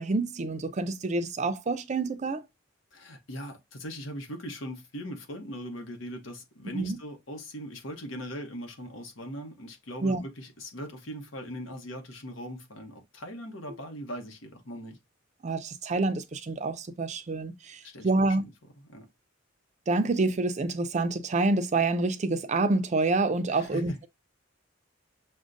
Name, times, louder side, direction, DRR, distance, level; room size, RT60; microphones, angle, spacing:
voice 1, 0.0-2.4 6.7-7.0 10.0-10.2 15.4-18.4 19.9-23.9, right 3 dB, 35° right, 0.4 m, -27 dB
voice 2, 2.9-15.0 17.8-18.3 18.8-19.1 23.5-24.1, equal, 75° left, 1.0 m, -40 dB
6.1 x 2.1 x 2.5 m
head